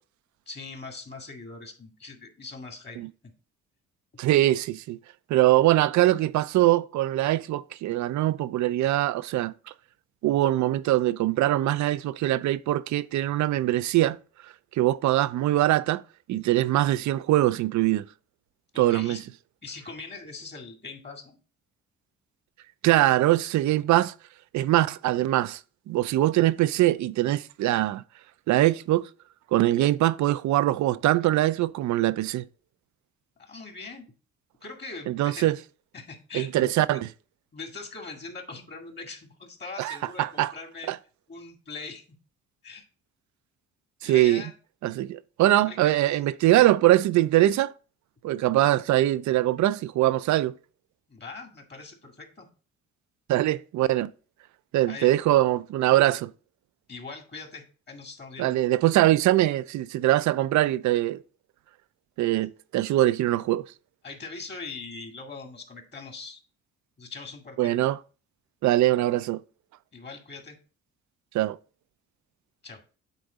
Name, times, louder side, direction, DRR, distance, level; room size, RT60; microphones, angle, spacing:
voice 1, 0.5-3.0 3.2-3.3 18.7-19.2 19.6-21.4 33.4-34.0 34.6-35.5 35.9-37.0 37.5-40.9 41.3-42.0 42.6-42.8 44.0-44.5 45.6-46.2 46.4-46.7 51.1-52.5 54.9-55.1 56.9-58.6 64.0-66.4 67.0-67.8 69.9-70.6 72.6-72.8, left 4 dB, 35° left, 2.1 m, -41 dB
voice 2, 4.2-5.0 5.3-9.5 10.2-14.2 14.7-16.0 16.3-18.0 18.8-19.2 22.8-24.1 24.5-25.6 25.9-28.0 28.5-29.1 29.5-32.4 35.1-35.6 36.3-37.1 39.8-40.5 40.9-41.0 44.0-44.4 44.8-47.7 48.2-50.5 53.3-54.1 54.7-56.3 58.4-61.2 62.2-63.7 67.6-68.0 68.6-69.4 71.3-71.6, right 15 dB, 70° right, 0.5 m, -22 dB
8.2 x 3.9 x 3.9 m
cardioid pair, 90°, 30 cm